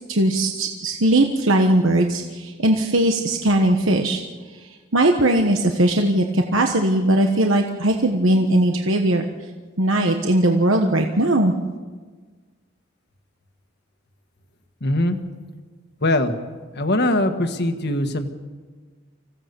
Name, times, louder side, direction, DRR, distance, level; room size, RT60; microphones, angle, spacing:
voice 1, 0.1-4.2 4.9-9.2 9.8-11.5, right 1 dB, 70° right, 3 dB, 1.3 m, -19 dB
voice 2, 14.8-15.2 16.0-16.4 16.7-18.3, left 1 dB, 55° left, 7 dB, 1.6 m, -21 dB
26.0 x 16.0 x 7.0 m, 1.4 s
head